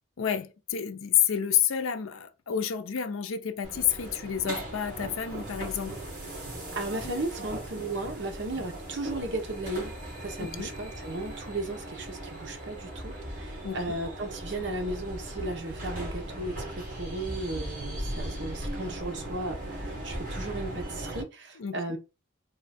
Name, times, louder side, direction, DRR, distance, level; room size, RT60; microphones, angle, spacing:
voice 1, 0.2-6.0 7.0-7.1 10.4-10.7 13.6-13.8 21.6-21.8, left 9 dB, 80° left, 0.5 m, -29 dB
sound 1, 3.6-21.2, right 1 dB, 40° right, 2.0 m, -38 dB
voice 2, 6.8-9.9 10.2-22.0, right 2 dB, 55° right, 0.9 m, -35 dB
3.8 x 2.3 x 4.1 m
head